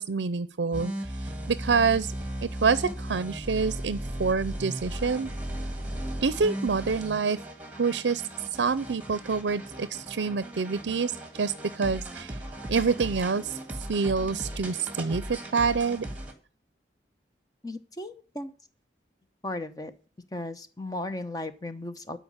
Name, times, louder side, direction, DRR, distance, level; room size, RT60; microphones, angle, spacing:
voice 1, 0.0-2.1 2.4-5.3 6.2-7.4 7.8-8.2 8.6-11.1 11.4-12.4 12.7-13.6 13.9-16.1, right 5 dB, 75° right, 16 dB, 0.5 m, -27 dB
sound 1, 0.7-16.3, right 1 dB, 10° right, 2.0 m, -37 dB
voice 2, 17.6-18.5 19.4-19.9 20.3-22.2, left 1 dB, 20° left, 9 dB, 0.9 m, -36 dB
12.5 x 5.1 x 8.8 m, 0.39 s
head